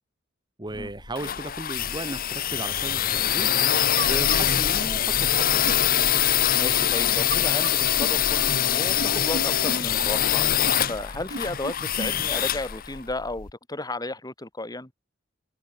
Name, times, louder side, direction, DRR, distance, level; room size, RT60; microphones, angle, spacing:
voice 1, 0.6-3.6 4.1-5.8, right 1 dB, 20° right, 1.9 m, -35 dB
sound 1, 0.8-13.5, left 11 dB, 45° left, 0.8 m, -24 dB
sound 2, 3.8-12.3, right 3 dB, 55° right, 1.2 m, -37 dB
voice 2, 6.5-10.5 10.9-14.9, left 2 dB, 20° left, 2.1 m, -33 dB
head